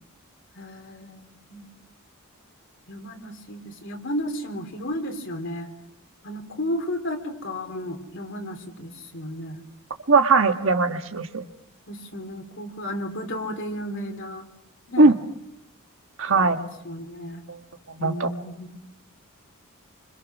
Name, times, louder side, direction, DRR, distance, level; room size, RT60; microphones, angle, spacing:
voice 1, 0.6-1.7 2.9-5.7 6.2-9.6 11.9-14.5 14.9-15.1 16.3-17.4 18.0-18.8, equal, 55° left, 5 dB, 3.3 m, -33 dB
voice 2, 10.1-11.5 15.0-15.1 16.2-16.6 17.5-17.6 18.0-18.3, right 3 dB, 60° right, 7 dB, 1.4 m, -19 dB
29.0 x 25.5 x 6.2 m, 0.87 s
head